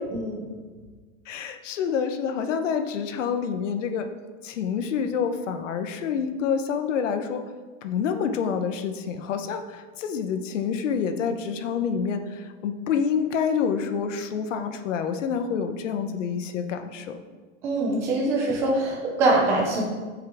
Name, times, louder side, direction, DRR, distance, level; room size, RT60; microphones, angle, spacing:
voice 1, 0.1-0.5 17.6-19.8, right 2 dB, 5° right, -1 dB, 0.4 m, -23 dB
voice 2, 1.3-4.1 4.4-7.4 7.8-17.2, left 6 dB, 65° left, 8 dB, 1.1 m, -27 dB
15.0 x 7.6 x 3.6 m, 1.4 s
supercardioid pair, 180°, 39 cm